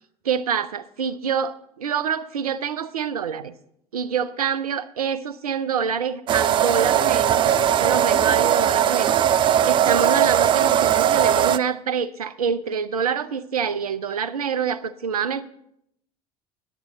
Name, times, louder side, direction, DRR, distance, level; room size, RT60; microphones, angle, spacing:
voice 1, 0.2-3.5 3.9-15.4, right 7 dB, 75° right, 0.6 m, -26 dB
sound 1, 6.3-11.6, right 10 dB, 25° right, 0.3 m, -19 dB
14.5 x 9.9 x 3.8 m
figure-of-eight pair, 70°, 19 cm